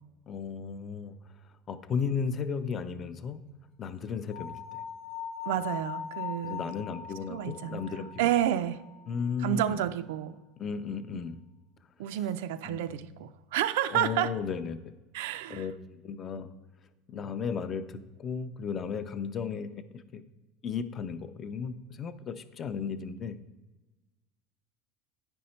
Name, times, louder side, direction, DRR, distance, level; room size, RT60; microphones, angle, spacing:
voice 1, 0.3-1.2 1.7-3.4 3.8-4.8 6.4-8.3 9.1-9.8 10.6-11.4 12.7-13.2 13.9-14.9 15.5-16.5 17.1-20.2 20.6-23.4, left 6 dB, 25° left, 12 dB, 0.5 m, -35 dB
sound 1, 4.3-9.4, left 7 dB, 70° left, 1.0 m, -41 dB
voice 2, 5.5-6.7 7.3-7.8 8.2-8.8 9.4-10.4 12.0-14.3 15.1-15.6, right 11 dB, 90° right, 10 dB, 0.3 m, -30 dB
9.4 x 5.4 x 4.3 m, 1.1 s
cardioid pair, 155°, 0 cm